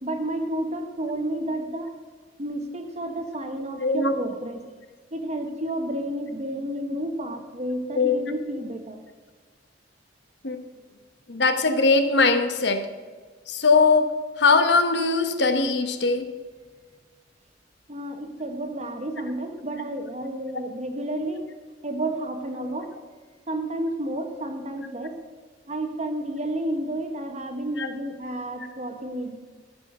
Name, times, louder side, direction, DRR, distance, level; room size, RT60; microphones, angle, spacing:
voice 1, 0.0-1.9 2.4-4.6 5.1-9.0 17.9-21.5 21.8-22.9 23.5-25.2 25.7-29.4, right 1 dB, 35° right, 6 dB, 1.3 m, -31 dB
voice 2, 3.8-4.1 7.9-8.2 10.4-10.6 11.3-12.9 13.5-16.3 27.8-27.9, left 4 dB, 65° left, 8 dB, 1.0 m, -21 dB
13.5 x 6.1 x 6.1 m, 1.5 s
head